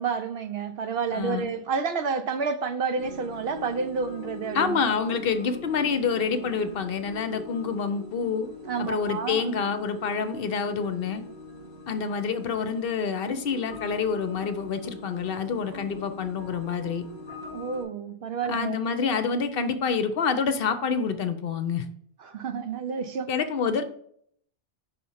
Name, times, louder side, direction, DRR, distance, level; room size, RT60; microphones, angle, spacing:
voice 1, 0.0-4.7 8.7-9.4 17.5-18.8 22.2-23.3, right 5 dB, 70° right, 0.8 m, -30 dB
voice 2, 1.1-1.5 4.5-8.5 8.8-11.2 11.9-17.0 18.5-21.8 23.3-23.8, left 5 dB, 65° left, 0.8 m, -27 dB
sound 1, 3.0-17.8, left 2 dB, 85° right, 2.8 m, -42 dB
5.7 x 4.2 x 5.5 m
omnidirectional pair, 1.1 m